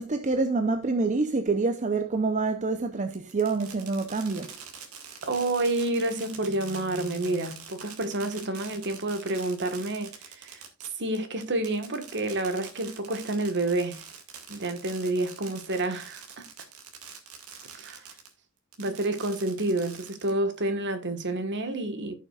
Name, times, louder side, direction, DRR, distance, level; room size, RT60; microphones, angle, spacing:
voice 1, 0.0-4.6, right 3 dB, 35° right, 0.7 m, -27 dB
Fireworks, 3.1-18.3 18.7-20.6, right 7 dB, 85° right, 2.1 m, -45 dB
voice 2, 5.2-10.6 11.0-14.1 14.5-16.5 17.7-18.0 18.8-22.1, right 2 dB, 55° right, 1.5 m, -29 dB
15.5 x 6.4 x 2.4 m
head